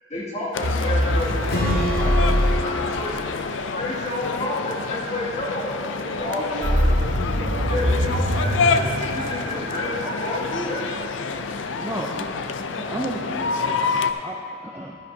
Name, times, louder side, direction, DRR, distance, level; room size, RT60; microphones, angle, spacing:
voice 1, 0.1-3.3 3.7-6.4 7.7-10.9, left 1 dB, 35° left, -7 dB, 2.2 m, -30 dB
sound 1, 0.5-14.1, left 4 dB, 75° left, 0.4 m, -28 dB
sound 2, 0.6-3.6 6.6-10.1, equal, 85° right, 1.0 m, -23 dB
Strum, 1.5-5.6, equal, 55° left, 2.0 m, -31 dB
voice 2, 6.0-8.7 9.2-9.7, right 1 dB, 65° right, -1 dB, 1.3 m, -36 dB
voice 3, 11.8-12.3 12.7-13.9 14.2-15.0, right 1 dB, 15° right, -2 dB, 0.4 m, -33 dB
12.0 x 10.5 x 2.7 m, 2.8 s
head